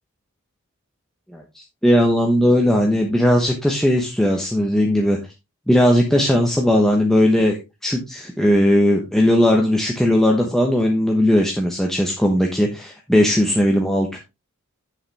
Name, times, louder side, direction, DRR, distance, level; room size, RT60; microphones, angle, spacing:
voice 1, 1.3-5.2 5.7-7.6 7.8-14.2, equal, ahead, 1 dB, 1.1 m, -18 dB
8.7 x 7.2 x 3.5 m, 0.25 s
head